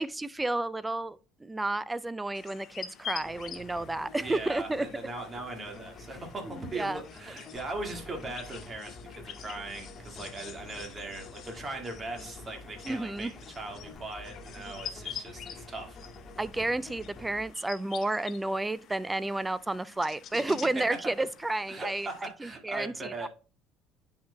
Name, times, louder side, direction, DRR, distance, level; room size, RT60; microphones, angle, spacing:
voice 1, 0.0-4.9 6.4-7.0 12.8-13.3 16.4-22.1 22.4-23.3, right 2 dB, 15° right, 0.4 m, -31 dB
sound 1, 2.3-22.2, left 8 dB, 55° left, 0.7 m, -47 dB
sound 2, 3.2-17.5, left 3 dB, 35° left, 1.6 m, -48 dB
voice 2, 4.2-16.0 20.3-20.5 20.9-21.0 21.7-23.3, right 2 dB, 30° right, 1.9 m, -39 dB
10.0 x 4.7 x 2.2 m
hypercardioid pair, 60°, 0 cm